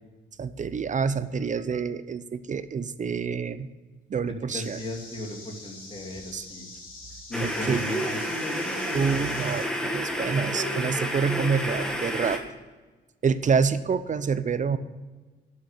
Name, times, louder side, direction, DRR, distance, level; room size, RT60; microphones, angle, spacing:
voice 1, 0.4-3.7 4.1-4.8 6.3-6.5 7.4-7.8 8.9-12.4 13.2-14.8, right 6 dB, 40° right, 13 dB, 0.7 m, -27 dB
voice 2, 4.3-6.7 7.3-9.2, left 1 dB, 25° left, 1 dB, 2.6 m, -36 dB
sound 1, 4.5-9.7, left 3 dB, 45° left, 3.4 m, -45 dB
sound 2, 7.3-12.4, equal, 5° left, 1.8 m, -30 dB
11.5 x 6.6 x 9.1 m, 1.3 s
cardioid pair, 90°, 20 cm